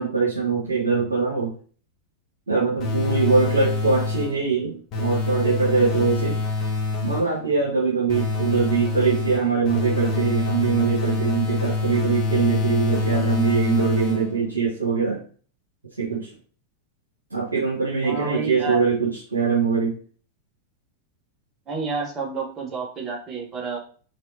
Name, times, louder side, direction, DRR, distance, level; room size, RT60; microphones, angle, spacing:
voice 1, 0.0-1.5 2.5-6.4 7.0-15.2 16.0-16.3 17.3-19.9, right 5 dB, 80° right, -5 dB, 1.4 m, -22 dB
sound 1, 2.8-4.5 4.9-7.4 8.1-14.5, left 3 dB, 35° left, 1.5 m, -26 dB
voice 2, 18.0-18.8 21.7-23.8, right 4 dB, 25° right, 1 dB, 1.4 m, -29 dB
4.9 x 3.8 x 2.8 m, 0.41 s
figure-of-eight pair, 90°, 0 cm